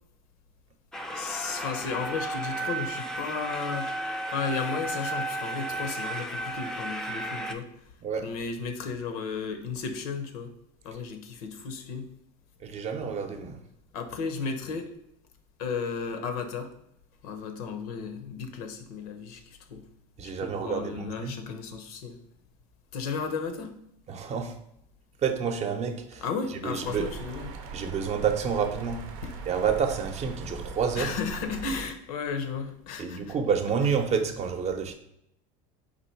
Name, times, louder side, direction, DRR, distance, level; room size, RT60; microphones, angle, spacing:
sound 1, 0.9-7.5, right 1 dB, 5° left, 0.4 m, -33 dB
voice 1, 1.1-3.9 4.3-7.7 8.2-10.5 10.8-12.1 13.9-14.9 15.6-16.7 17.2-19.8 20.2-22.2 22.9-23.8 26.2-27.6 29.2-29.3 30.9-33.3, left 5 dB, 85° left, 0.7 m, -34 dB
voice 2, 12.6-13.6 20.2-21.4 24.1-24.6 25.2-26.2 26.6-27.1 27.7-29.1 29.5-31.1 33.0-34.9, right 6 dB, 35° right, 0.7 m, -29 dB
sound 2, 26.8-31.9, right 5 dB, 80° right, 0.6 m, -40 dB
4.2 x 2.7 x 4.4 m
supercardioid pair, 105°, 18 cm